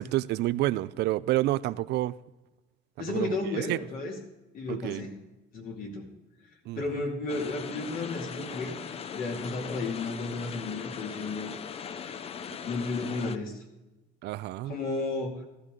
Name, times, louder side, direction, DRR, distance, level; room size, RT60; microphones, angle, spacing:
voice 1, 0.0-2.1 3.0-3.8 4.7-5.1 6.7-6.8 14.2-14.8, right 16 dB, 65° right, 0.5 m, -29 dB
voice 2, 3.0-4.2 4.5-5.2 5.5-6.1 6.7-8.7 9.1-11.5 12.0-12.2 12.6-13.6 14.6-15.5, left 3 dB, 50° left, 2.5 m, -33 dB
sound 1, 7.3-13.4, left 7 dB, 30° left, 0.6 m, -39 dB
15.0 x 12.0 x 3.8 m
cardioid pair, 155°, 19 cm